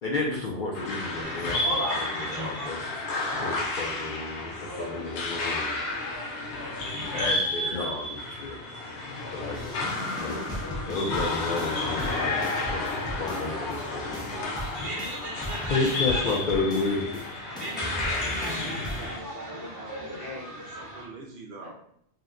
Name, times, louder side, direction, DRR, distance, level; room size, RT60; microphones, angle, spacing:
voice 1, 0.0-2.8 3.3-5.7 7.1-8.5 9.3-9.6 10.2-10.4 10.7-14.2 15.7-17.0, left 3 dB, 60° left, -3 dB, 0.6 m, -31 dB
sound 1, 0.7-19.2, left 2 dB, 75° left, 0.9 m, -32 dB
sound 2, 1.2-21.0, equal, 30° right, 1.0 m, -39 dB
sound 3, 9.5-13.8 14.1-17.3 17.6-19.2, equal, 5° left, 0.6 m, -38 dB
voice 2, 10.0-10.3 11.4-12.1 15.7-15.8 20.5-21.7, right 3 dB, 65° right, -1 dB, 0.9 m, -46 dB
voice 3, 17.8-20.5 21.6-21.7, equal, 40° left, -6 dB, 1.1 m, -43 dB
2.8 x 2.1 x 3.5 m, 0.70 s
omnidirectional pair, 1.2 m